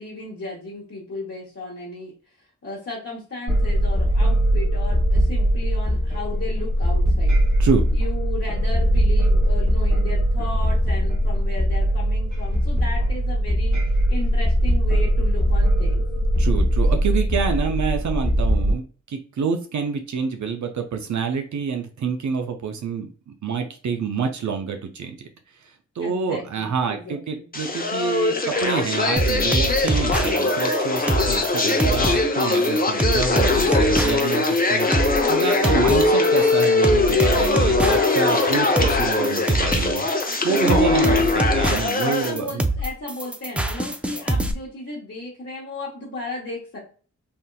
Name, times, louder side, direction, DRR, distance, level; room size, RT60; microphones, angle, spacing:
voice 1, 0.0-2.1 2.6-7.4 7.9-16.0 26.0-27.5 41.4-41.7 42.0-46.8, left 2 dB, 50° left, -6 dB, 1.1 m, -35 dB
sound 1, 3.5-18.7, equal, 90° right, 1.4 m, -20 dB
voice 2, 16.4-25.3 25.6-40.1 40.4-42.6, right 6 dB, 70° right, 5 dB, 0.5 m, -27 dB
sound 2, 27.5-42.3, left 3 dB, 30° left, 0.7 m, -21 dB
sound 3, 29.2-44.5, right 1 dB, 5° right, 0.4 m, -24 dB
3.5 x 2.7 x 2.3 m, 0.40 s
cardioid pair, 55°, 30 cm